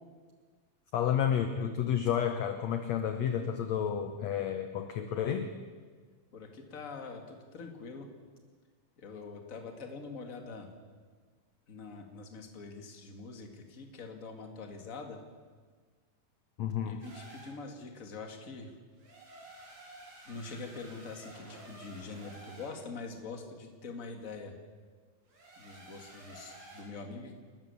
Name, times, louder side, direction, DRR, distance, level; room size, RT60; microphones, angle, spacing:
voice 1, 0.9-5.5 16.6-17.0, left 9 dB, 70° left, 7 dB, 1.7 m, -31 dB
voice 2, 6.3-8.1 9.0-10.7 11.7-15.2 16.9-18.7 20.3-24.5 25.6-27.3, left 4 dB, 30° left, 4 dB, 1.9 m, -44 dB
sound 1, 17.0-17.6 18.9-22.8 25.3-26.8, right 1 dB, 90° right, 8.5 m, -52 dB
29.5 x 13.5 x 7.2 m, 1.5 s
omnidirectional pair, 4.2 m